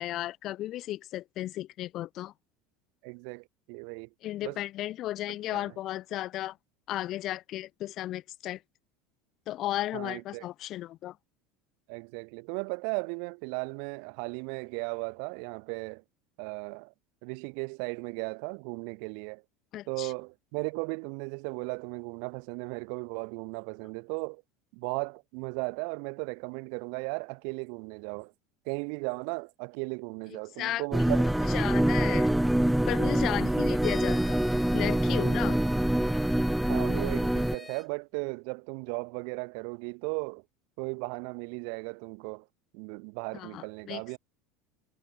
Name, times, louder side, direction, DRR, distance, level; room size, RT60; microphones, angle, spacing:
voice 1, 0.0-2.3 4.2-6.6 6.9-8.6 9.5-11.2 19.7-20.1 30.6-30.8 31.5-32.3 32.9-34.4 34.7-35.6 43.3-44.2, left 14 dB, 50° left, 0.5 m, -34 dB
voice 2, 3.0-4.1 4.4-4.6 5.5-5.7 9.9-10.4 11.9-16.0 16.4-16.9 17.2-19.4 19.9-24.4 24.7-28.3 28.6-31.3 36.7-40.4 40.8-42.5 42.7-44.2, right 40 dB or more, 70° right, 1.4 m, -36 dB
sound 1, 30.9-37.6, right 1 dB, 5° right, 0.6 m, -25 dB
sound 2, 33.8-37.9, left 3 dB, 15° left, 4.6 m, -45 dB
supercardioid pair, 100°, 0 cm